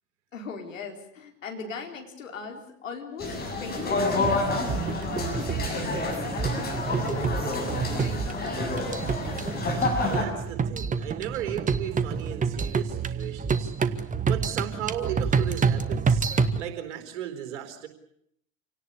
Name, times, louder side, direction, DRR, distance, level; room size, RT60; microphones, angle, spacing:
voice 1, 0.3-9.3, left 5 dB, 75° left, 3 dB, 4.3 m, -40 dB
sound 1, 3.2-10.2, left 3 dB, 25° left, 7.3 m, -29 dB
sound 2, 4.2-16.6, right 5 dB, 20° right, 1.4 m, -28 dB
voice 2, 10.0-14.0 14.2-17.9, right 10 dB, 60° right, 7 dB, 4.3 m, -35 dB
27.5 x 18.0 x 8.5 m, 0.71 s
figure-of-eight pair, 75°, 39 cm